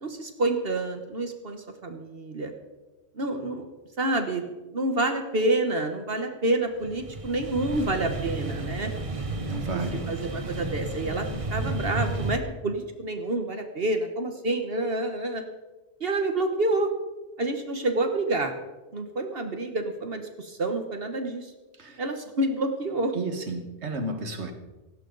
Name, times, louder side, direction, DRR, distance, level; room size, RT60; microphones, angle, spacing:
voice 1, 0.0-2.5 3.1-3.7 4.0-8.9 10.1-15.4 16.0-16.9 17.4-18.5 18.9-21.5 22.0-23.1, right 2 dB, 60° right, 6 dB, 1.5 m, -28 dB
sound 1, 6.8-12.4, right 2 dB, 30° right, 1.1 m, -32 dB
voice 2, 9.4-10.1 21.8-22.0 23.1-24.5, right 2 dB, 85° right, 6 dB, 1.9 m, -32 dB
17.0 x 17.0 x 4.0 m, 1.1 s
omnidirectional pair, 1.1 m